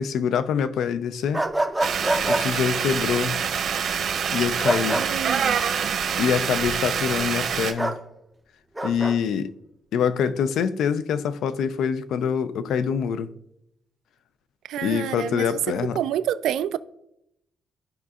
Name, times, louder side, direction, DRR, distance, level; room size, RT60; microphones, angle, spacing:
voice 1, 0.0-1.4 2.2-3.4 4.3-5.0 6.2-8.0 8.8-9.5 9.9-13.3 14.8-16.0, left 7 dB, 70° left, 0.4 m, -25 dB
sound 1, 1.3-2.4 4.6-5.1 7.8-8.0 8.8-9.1, right 2 dB, 5° right, 0.5 m, -25 dB
sound 2, 1.8-7.7, right 7 dB, 55° right, 0.9 m, -26 dB
voice 2, 5.0-6.0 14.7-15.6 16.0-16.8, right 11 dB, 80° right, 0.3 m, -28 dB
13.5 x 5.1 x 2.4 m
cardioid pair, 155°, 0 cm